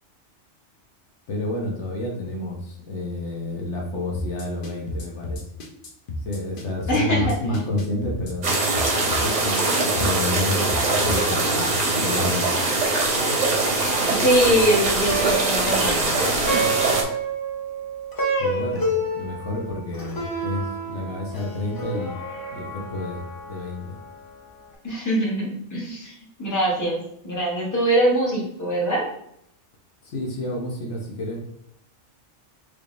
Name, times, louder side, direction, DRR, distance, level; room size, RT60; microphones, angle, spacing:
voice 1, 1.3-5.4 6.2-8.5 9.2-12.6 18.4-22.2 22.5-24.0 30.0-31.5, left 2 dB, 70° left, -1 dB, 1.1 m, -29 dB
sound 1, 4.1-11.9, left 1 dB, 55° left, 0.7 m, -33 dB
voice 2, 6.9-7.2 14.1-16.6 24.8-26.1 26.4-29.0, right 1 dB, 15° left, -4 dB, 1.0 m, -23 dB
sound 2, 8.4-17.0, right 2 dB, 45° right, 0.7 m, -22 dB
Plucked string instrument, 14.9-24.3, right 2 dB, 35° left, 0.3 m, -29 dB
3.6 x 3.2 x 2.5 m, 0.72 s
omnidirectional pair, 1.2 m